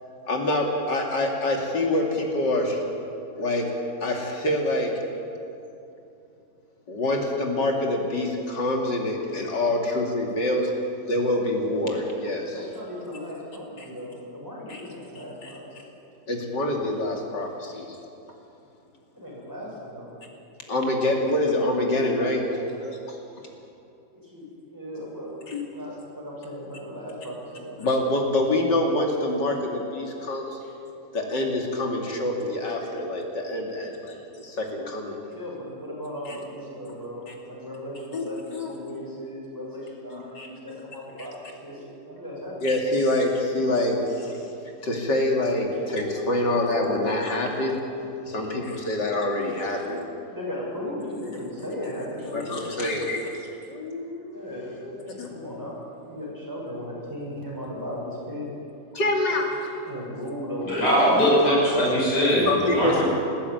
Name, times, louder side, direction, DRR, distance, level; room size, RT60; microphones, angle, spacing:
voice 1, 0.2-2.8 3.4-3.7 4.0-4.9 6.9-10.7 11.1-12.7 13.8-13.9 14.7-14.8 15.1-15.6 16.3-18.0 20.7-23.2 25.5-25.7 27.8-30.6 31.1-35.2 36.2-36.4 37.3-37.4 38.1-38.2 38.5-38.7 40.1-40.5 41.2-41.3 42.6-44.5 44.8-47.8 48.3-50.0 51.2-51.7 52.3-55.3 58.9-59.6 62.3-63.0, left 1 dB, 90° left, 1 dB, 3.4 m, -26 dB
voice 2, 12.5-15.7 17.7-17.8 19.1-20.1 24.1-25.4 25.7-27.8 30.6-30.7 34.1-34.2 35.3-42.7 48.4-48.6 50.2-52.7 54.3-58.5 59.9-61.0, equal, 10° right, -5 dB, 7.0 m, -37 dB
voice 3, 60.7-63.0, equal, 70° left, -6 dB, 6.9 m, -21 dB
20.0 x 14.5 x 9.5 m, 2.8 s
omnidirectional pair, 1.8 m